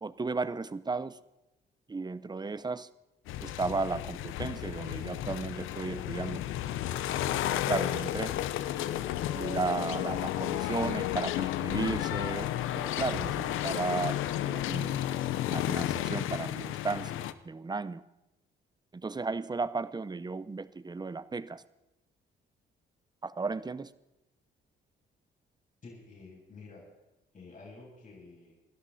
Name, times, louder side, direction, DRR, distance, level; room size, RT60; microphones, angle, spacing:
voice 1, 0.0-1.2 1.9-2.9 3.4-6.4 7.6-8.3 9.3-12.5 12.8-14.2 14.5-15.0 15.5-18.0 18.9-21.6 23.2-23.9, right 4 dB, 20° right, 15 dB, 0.9 m, -34 dB
sound 1, 3.3-17.3, left 12 dB, 90° left, 0.8 m, -32 dB
voice 2, 25.8-26.9 27.3-28.6, left 3 dB, 40° left, -3 dB, 7.4 m, -50 dB
27.5 x 12.0 x 4.3 m, 0.96 s
cardioid pair, 90°, 20 cm